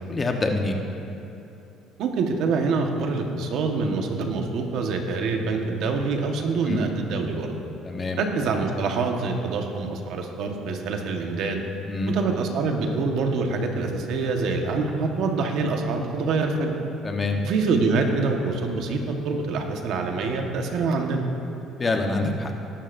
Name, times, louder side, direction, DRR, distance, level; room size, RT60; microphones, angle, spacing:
voice 1, 0.1-0.8 6.7-6.8 7.8-8.2 11.9-12.1 17.0-17.4 21.8-22.5, left 2 dB, 25° left, 3 dB, 1.1 m, -25 dB
voice 2, 2.0-7.5 8.2-11.6 12.1-16.8 17.4-21.3, right 4 dB, 70° right, 3 dB, 1.4 m, -25 dB
20.0 x 11.5 x 2.7 m, 3.0 s
cardioid pair, 105°, 0 cm